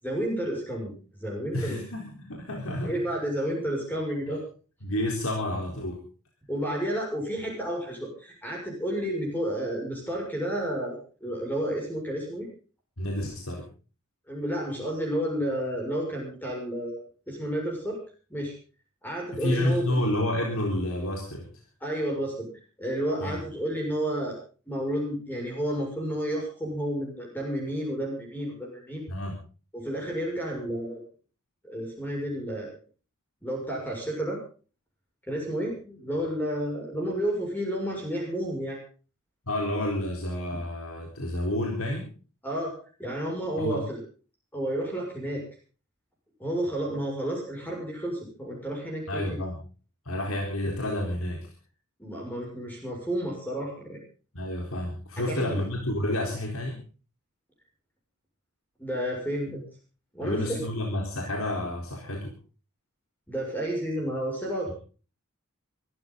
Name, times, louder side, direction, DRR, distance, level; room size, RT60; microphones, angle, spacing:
voice 1, 0.0-0.9 1.2-1.8 2.8-4.4 6.5-12.5 14.3-17.0 17.3-18.0 18.3-18.5 19.0-19.9 21.8-22.5 22.8-24.4 24.7-29.0 29.7-31.0 31.6-32.7 33.4-34.4 35.3-38.8 42.4-42.7 43.0-44.0 44.5-45.4 46.4-49.4 52.0-54.0 55.2-55.6 58.8-59.6 60.1-60.6 63.3-64.7, equal, 10° left, -1 dB, 6.6 m, -31 dB
voice 2, 1.5-2.9 4.8-6.0 13.0-13.7 19.4-21.5 23.2-23.4 29.1-29.4 39.5-42.1 43.6-43.8 49.1-49.5 50.1-51.5 54.3-56.8 60.2-62.3, left 1 dB, 80° left, 0 dB, 4.2 m, -30 dB
24.0 x 14.0 x 4.0 m, 0.38 s
head